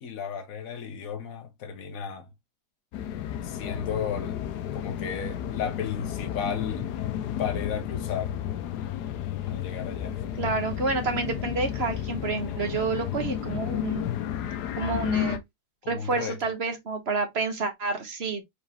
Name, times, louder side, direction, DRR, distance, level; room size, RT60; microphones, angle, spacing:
voice 1, 0.0-2.3 3.4-4.4 4.7-6.9 7.4-8.3 9.5-10.2 15.8-16.4, left 7 dB, 60° left, 1.4 m, -34 dB
sound 1, 2.9-15.4, left 10 dB, 85° left, 1.2 m, -32 dB
voice 2, 10.4-14.1 14.8-15.4 15.9-18.4, right 4 dB, 45° right, 1.3 m, -29 dB
4.6 x 3.6 x 3.1 m
omnidirectional pair, 1.7 m